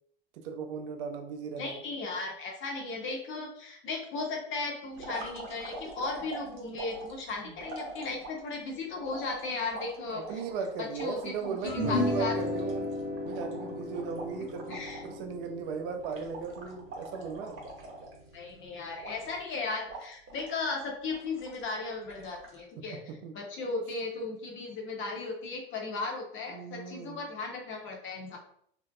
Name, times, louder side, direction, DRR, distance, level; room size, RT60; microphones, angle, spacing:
voice 1, 0.3-1.8 7.4-7.6 10.1-12.9 13.2-17.6 22.8-23.4 23.8-23.9 26.5-27.2, right 5 dB, 70° right, 5 dB, 0.5 m, -37 dB
voice 2, 1.6-10.2 10.8-12.3 14.7-15.0 18.3-23.0 23.3-28.4, left 3 dB, 45° left, 1 dB, 0.8 m, -36 dB
sound 1, 4.9-8.5 9.1-11.6 11.9-12.0 12.2-15.2 15.4-15.7 16.0-18.5 19.0-19.5 19.9-20.6 21.1-21.7 22.1-22.6, right 2 dB, 45° right, 0.9 m, -44 dB
sound 2, 11.7-18.2, left 1 dB, 80° left, 1.0 m, -34 dB
2.6 x 2.1 x 2.3 m, 0.66 s
hypercardioid pair, 80°, 29 cm